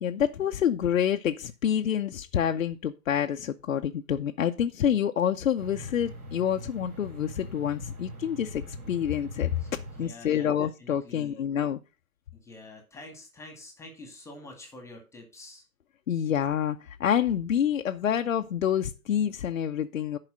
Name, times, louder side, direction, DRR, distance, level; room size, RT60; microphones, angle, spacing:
voice 1, 0.0-9.6 10.0-11.8 16.1-20.2, left 9 dB, 60° left, 0.8 m, -27 dB
sound 1, 5.6-10.1, equal, 65° right, 5.3 m, -42 dB
voice 2, 10.0-10.5 10.8-11.4 12.3-15.6, left 2 dB, 5° left, 1.8 m, -47 dB
10.5 x 4.9 x 6.1 m
figure-of-eight pair, 130°, 44 cm